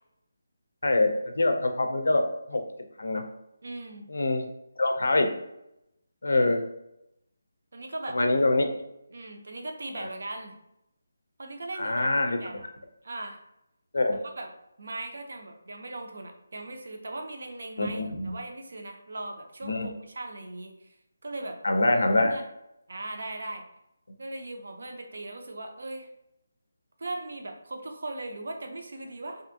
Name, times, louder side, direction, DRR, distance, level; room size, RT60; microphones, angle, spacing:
voice 1, 0.8-2.2 2.5-2.6 3.0-3.2 4.1-4.5 4.8-5.3 6.2-6.6 8.1-8.7 10.0-10.1 11.8-12.4 13.9-14.2 17.8-18.4 19.6-19.9 21.6-22.3, left 2 dB, 75° left, 5 dB, 0.5 m, -24 dB
voice 2, 3.6-4.1 6.4-6.5 7.7-8.2 9.1-10.6 11.4-12.7 13.0-13.4 14.1-14.5 14.8-21.0 21.2-21.6 22.0-22.4 22.9-23.6 24.2-26.1 27.0-29.4, right 2 dB, 55° right, 4 dB, 0.5 m, -39 dB
2.6 x 2.5 x 2.5 m, 0.84 s
hypercardioid pair, 180°, 0 cm